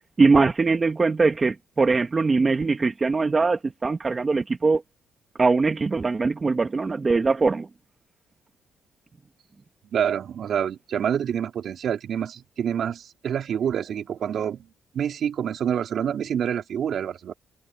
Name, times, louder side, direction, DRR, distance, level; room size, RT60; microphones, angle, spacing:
voice 1, 0.2-4.8 5.4-7.7, right 4 dB, 30° right, 1.3 m, -21 dB
voice 2, 9.9-14.7 14.9-17.3, right 8 dB, 65° right, 3.6 m, -27 dB
cardioid pair, 90°, 0 cm